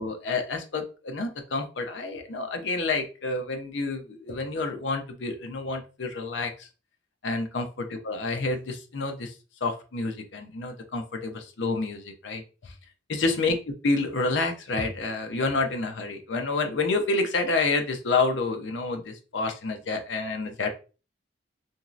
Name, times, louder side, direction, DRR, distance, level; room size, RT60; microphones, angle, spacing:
voice 1, 0.0-6.7 7.2-9.3 9.6-12.7 13.1-13.6 13.8-20.7, left 3 dB, 70° left, 5 dB, 0.6 m, -29 dB
3.0 x 2.7 x 2.4 m, 0.34 s
head